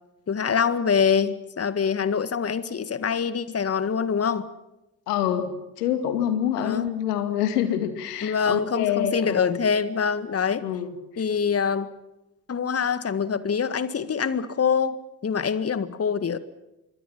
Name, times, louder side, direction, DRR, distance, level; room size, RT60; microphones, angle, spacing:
voice 1, 0.3-4.5 6.6-6.9 8.2-10.6 11.2-11.9 12.5-16.4, left 6 dB, 30° left, 15 dB, 1.8 m, -25 dB
voice 2, 5.1-5.5 5.8-9.6 10.6-11.0, left 10 dB, 75° left, 9 dB, 2.6 m, -26 dB
26.5 x 23.0 x 5.9 m, 0.96 s
figure-of-eight pair, 50°, 47 cm